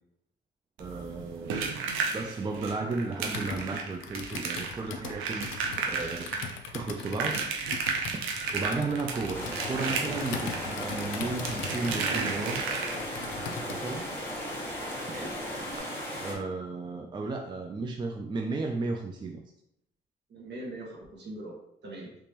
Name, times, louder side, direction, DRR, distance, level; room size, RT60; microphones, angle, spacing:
voice 1, 0.8-1.7 2.1-6.3 6.7-7.5 8.5-12.6 13.7-14.1 16.2-19.4, right 3 dB, 25° right, 3 dB, 0.4 m, -34 dB
sound 1, 0.8-13.3 14.8-14.9 15.1-15.3 15.7-15.8, right 5 dB, 90° right, 0.6 m, -34 dB
Computer keyboard, 3.2-14.0, left 6 dB, 80° left, 0.5 m, -41 dB
sound 2, 9.3-16.3, equal, 10° left, 1.3 m, -36 dB
voice 2, 20.3-21.6 21.8-22.1, right 1 dB, 60° right, -2 dB, 1.4 m, -41 dB
3.5 x 3.0 x 2.9 m, 0.79 s
cardioid pair, 90°, 20 cm